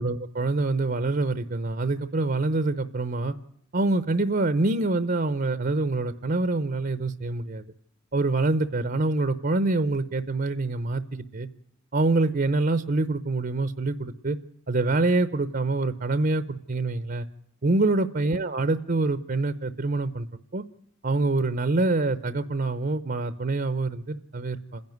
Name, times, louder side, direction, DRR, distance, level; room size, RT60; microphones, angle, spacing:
voice 1, 0.0-3.3 3.7-7.6 8.1-11.5 11.9-14.4 14.7-17.3 17.6-20.3 20.5-20.6 21.0-24.8, right 2 dB, 45° right, 13 dB, 0.7 m, -25 dB
28.0 x 11.0 x 9.2 m, 0.76 s
head